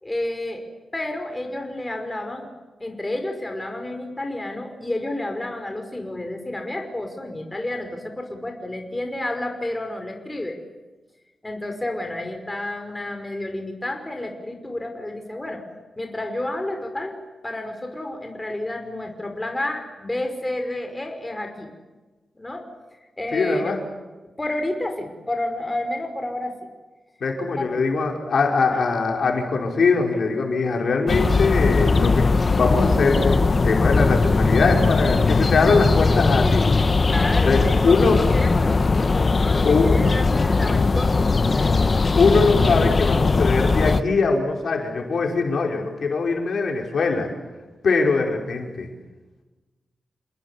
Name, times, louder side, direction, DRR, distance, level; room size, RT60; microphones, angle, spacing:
voice 1, 0.0-0.7 0.9-2.5 2.8-10.6 11.4-15.6 16.0-17.2 17.4-21.7 22.4-22.7 23.2-23.6 24.4-26.5 27.6-27.8 28.6-28.8 36.3-38.0 38.3-41.8, left 1 dB, 15° left, 4 dB, 5.5 m, -30 dB
voice 2, 23.3-23.8 27.2-32.3 32.6-36.7 37.4-38.2 39.7-40.0 42.2-47.3 47.8-48.9, left 4 dB, 65° left, 1 dB, 5.3 m, -21 dB
sound 1, 31.1-44.0, left 3 dB, 40° left, 1.2 m, -19 dB
29.0 x 20.5 x 9.9 m, 1.2 s
wide cardioid pair, 105°, 0 cm